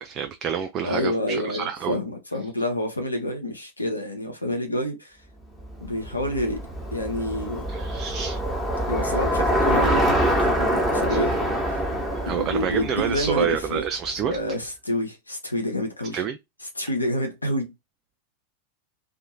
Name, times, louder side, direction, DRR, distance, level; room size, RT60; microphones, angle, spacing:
voice 1, 0.0-2.0 7.7-8.4 11.1-11.2 12.3-14.4 16.1-16.4, right 8 dB, 30° right, 0.3 m, -28 dB
voice 2, 0.8-5.2 5.8-6.6 6.9-7.6 8.9-11.8 12.2-13.8 14.3-16.2 16.7-17.7, left 1 dB, 80° left, 0.8 m, -28 dB
Bicycle, 5.7-14.1, equal, ahead, 1.2 m, -25 dB
2.6 x 2.5 x 2.6 m
figure-of-eight pair, 90°, 0 cm